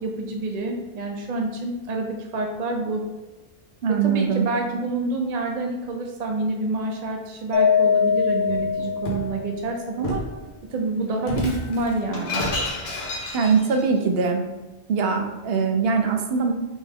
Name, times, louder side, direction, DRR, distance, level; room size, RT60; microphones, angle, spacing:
voice 1, 0.0-3.0 4.0-10.2 10.7-12.4, right 2 dB, 50° right, 1 dB, 0.6 m, -27 dB
voice 2, 3.8-4.5 13.3-14.4 14.9-16.5, right 5 dB, 75° right, 4 dB, 0.8 m, -22 dB
Mallet percussion, 7.5-9.8, left 6 dB, 55° left, 0.6 m, -22 dB
Shatter, 8.4-9.3 10.0-10.3 11.2-13.8, left 2 dB, 80° left, 1.2 m, -30 dB
4.4 x 3.3 x 3.5 m, 1.1 s
omnidirectional pair, 1.0 m